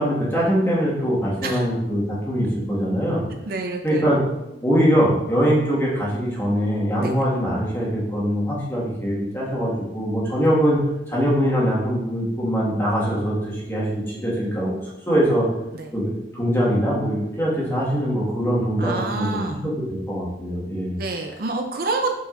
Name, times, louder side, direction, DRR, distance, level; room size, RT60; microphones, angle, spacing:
voice 1, 0.0-3.2 3.8-4.2 4.6-10.8 11.1-14.7 15.1-15.5 15.9-19.7 20.1-21.0, equal, 15° left, -6 dB, 1.8 m, -22 dB
voice 2, 3.5-4.1 7.0-7.2 15.7-15.9 18.8-19.6 21.0-22.1, right 3 dB, 55° right, 4 dB, 0.5 m, -27 dB
7.8 x 5.0 x 2.6 m, 0.92 s
head